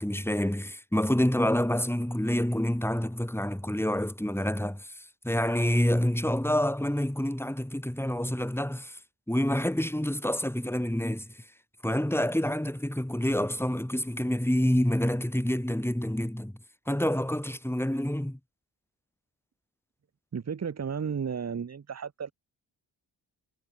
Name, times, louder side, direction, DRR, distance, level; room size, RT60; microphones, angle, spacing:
voice 1, 0.0-9.0 9.3-11.5 11.8-16.5 16.9-18.4, left 1 dB, 5° left, 4.6 m, -27 dB
voice 2, 20.3-22.3, right 6 dB, 35° right, 1.1 m, -33 dB
supercardioid pair, 45°, 48 cm